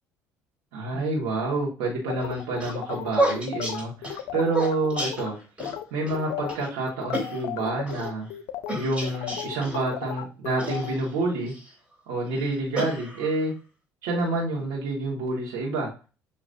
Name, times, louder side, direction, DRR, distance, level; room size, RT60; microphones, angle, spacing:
voice 1, 0.7-5.4 5.9-8.3 8.7-11.5 12.1-13.5 14.0-15.9, right 2 dB, 85° right, -4 dB, 1.6 m, -28 dB
sound 1, 2.1-5.3 5.6-5.8 6.1-10.9, left 12 dB, 80° left, 0.5 m, -35 dB
sound 2, 2.2-5.8 6.1-6.2 6.5-6.7 7.1-8.1 8.7-9.8 10.6-11.7 12.3-13.5, right 1 dB, 15° right, 2.8 m, -31 dB
6.7 x 3.0 x 2.6 m, 0.33 s
supercardioid pair, 90°, 7 cm